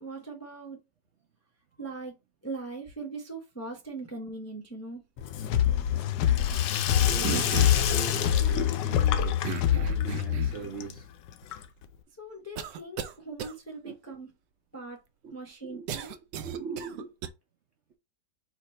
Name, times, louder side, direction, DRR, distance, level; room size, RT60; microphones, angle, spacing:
voice 1, 0.0-0.8 1.8-2.2 2.4-5.0 12.2-14.3 14.7-15.0 15.3-16.1, right 3 dB, 15° left, 0.6 m, -40 dB
Sink (filling or washing), 5.2-12.0, left 10 dB, 90° left, 1.3 m, -33 dB
sound 1, 5.5-10.5, left 10 dB, 75° left, 1.1 m, -25 dB
voice 2, 7.0-9.5 9.7-11.1 13.8-13.9 15.2-15.4 15.6-15.9 16.3-17.1, right 6 dB, 60° right, 0.8 m, -40 dB
sound 2, 7.2-7.9 9.4-10.7 11.4-11.5 12.6-13.1 13.4-13.5 15.9-17.3, right 9 dB, 80° right, 1.2 m, -35 dB
4.8 x 2.5 x 4.2 m
omnidirectional pair, 1.9 m